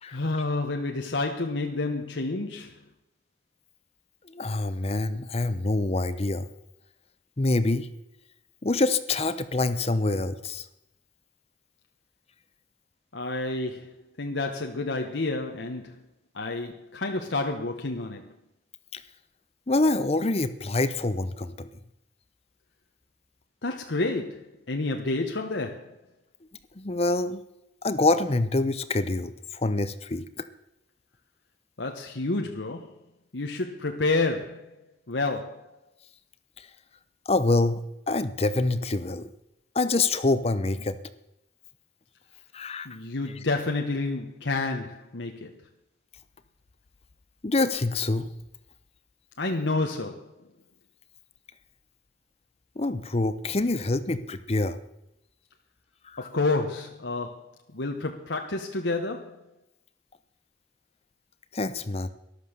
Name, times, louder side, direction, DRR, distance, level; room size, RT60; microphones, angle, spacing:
voice 1, 0.1-2.8 13.1-16.0 16.3-18.3 23.6-26.0 31.8-32.9 33.3-34.8 35.1-35.8 42.8-45.5 49.4-50.3 56.2-59.4, left 3 dB, 80° left, 1.2 m, -29 dB
voice 2, 4.2-6.5 7.4-7.9 8.6-10.7 18.9-19.0 19.7-21.7 26.8-27.4 27.8-30.5 36.6-36.7 37.3-39.3 39.7-41.0 42.5-42.9 47.4-48.3 52.8-54.8 56.0-56.3 61.5-62.1, left 2 dB, 35° left, 0.7 m, -26 dB
13.0 x 11.5 x 6.7 m
head